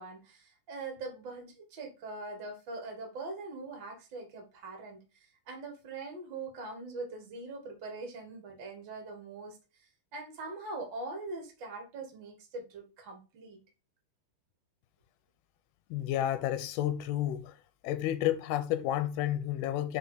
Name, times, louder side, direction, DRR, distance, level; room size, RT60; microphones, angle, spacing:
voice 1, 0.0-13.6, right 3 dB, 45° right, 1.6 m, -42 dB
voice 2, 15.9-17.5 17.8-20.0, left 12 dB, 90° left, 2.6 m, -31 dB
7.4 x 3.6 x 4.0 m
omnidirectional pair, 4.4 m